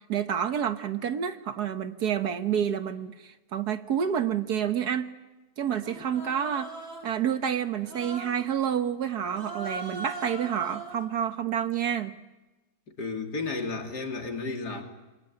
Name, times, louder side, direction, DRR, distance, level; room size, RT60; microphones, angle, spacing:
voice 1, 0.0-5.1 5.6-6.7 7.0-12.1, right 8 dB, 75° right, 9 dB, 1.7 m, -29 dB
Human voice, 5.8-7.2 7.8-8.5 9.3-11.1, right 3 dB, 50° right, 4.2 m, -39 dB
voice 2, 13.0-14.8, left 3 dB, 85° left, 3 dB, 3.5 m, -32 dB
27.0 x 23.0 x 8.7 m, 1.1 s
omnidirectional pair, 1.7 m